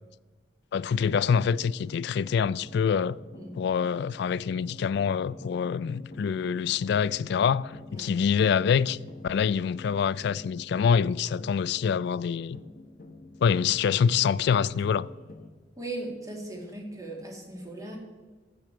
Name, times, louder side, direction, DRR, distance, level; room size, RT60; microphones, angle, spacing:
voice 1, 0.7-3.2 3.5-9.0 9.2-12.6 13.4-15.1, left 7 dB, 60° left, 0.3 m, -25 dB
sound 1, 0.8-15.5, left 2 dB, 45° left, 1.0 m, -48 dB
voice 2, 15.8-18.0, right 2 dB, 20° right, 1.9 m, -38 dB
15.0 x 6.6 x 4.4 m
head